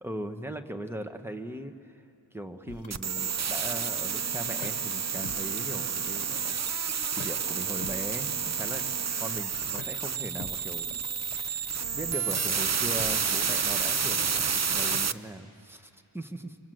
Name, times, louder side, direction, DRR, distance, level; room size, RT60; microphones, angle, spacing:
voice 1, 0.0-1.7 2.3-6.5 7.2-8.8 9.2-16.6, right 1 dB, 5° right, 7 dB, 1.2 m, -39 dB
sound 1, 2.7-15.0, left 6 dB, 75° left, 1.0 m, -48 dB
sound 2, 2.9-15.1, right 6 dB, 35° right, 0.5 m, -30 dB
27.5 x 24.0 x 7.8 m, 2.6 s
wide cardioid pair, 65°, 47 cm